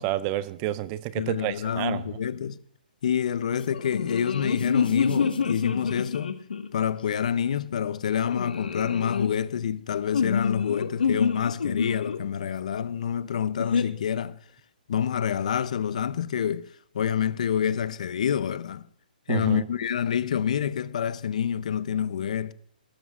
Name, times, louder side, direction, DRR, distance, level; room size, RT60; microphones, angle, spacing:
voice 1, 0.0-2.2 19.3-19.7, right 14 dB, 20° right, 0.4 m, -29 dB
voice 2, 1.2-2.6 3.0-6.4 6.7-14.4 14.9-18.8 19.3-22.5, left 8 dB, 50° left, 0.6 m, -27 dB
sound 1, 3.7-6.8 8.2-9.3 10.1-12.2 13.6-13.8, left 6 dB, 85° left, 1.5 m, -27 dB
17.5 x 12.5 x 2.4 m
hypercardioid pair, 170°, 5 cm